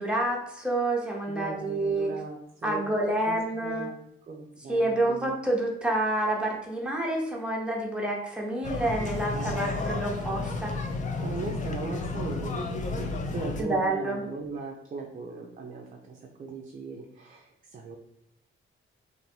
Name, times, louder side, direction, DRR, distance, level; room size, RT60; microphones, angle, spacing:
voice 1, 0.0-2.1 2.6-3.9 4.7-10.7 13.6-14.2, right 1 dB, 5° right, -2 dB, 0.8 m, -28 dB
voice 2, 1.3-2.8 3.2-5.4 9.3-9.9 11.2-18.0, right 3 dB, 40° right, 0 dB, 0.5 m, -39 dB
sound 1, 8.6-13.6, left 3 dB, 35° left, 0.5 m, -32 dB
3.3 x 2.6 x 4.3 m, 0.79 s
wide cardioid pair, 175°, 21 cm